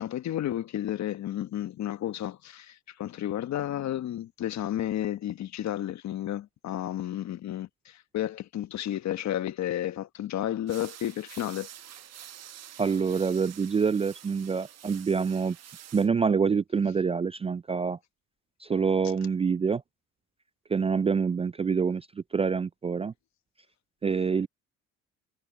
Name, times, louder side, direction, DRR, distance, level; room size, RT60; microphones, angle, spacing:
voice 1, 0.0-11.7, left 12 dB, 60° left, 1.3 m, -32 dB
sound 1, 10.7-16.1, right 11 dB, 55° right, 1.2 m, -48 dB
voice 2, 12.8-15.6 15.9-18.0 18.6-19.8 20.7-22.1 22.3-23.1 24.0-24.5, right 5 dB, 20° right, 0.4 m, -26 dB
supercardioid pair, 70°, 32 cm